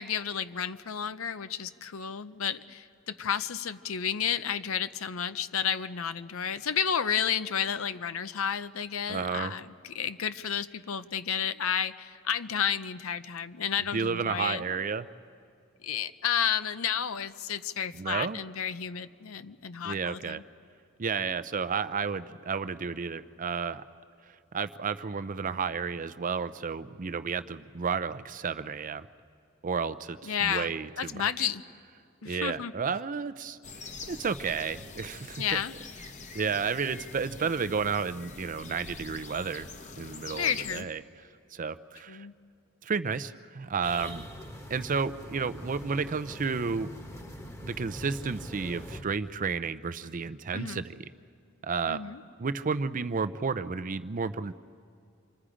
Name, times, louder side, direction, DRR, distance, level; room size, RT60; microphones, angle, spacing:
voice 1, 0.0-14.7 15.8-20.4 30.2-31.6 32.2-32.7 35.4-35.7 40.3-40.9 42.1-42.3 50.5-50.8 51.9-52.2, left 8 dB, 85° left, 12 dB, 0.7 m, -31 dB
voice 2, 9.1-9.6 13.9-15.1 17.9-18.4 19.8-20.4 21.0-23.8 24.5-29.1 29.6-31.5 32.2-33.6 34.1-35.6 36.3-39.7 40.0-41.0 41.5-42.3 42.8-44.3 44.7-46.9 47.6-50.9 51.6-52.0 52.4-54.5, right 5 dB, 40° right, 13 dB, 0.5 m, -32 dB
sound 1, 33.6-40.8, left 4 dB, 35° left, 1.0 m, -44 dB
sound 2, 43.8-49.0, equal, 15° left, 1.2 m, -43 dB
28.0 x 25.0 x 5.0 m, 2.3 s
head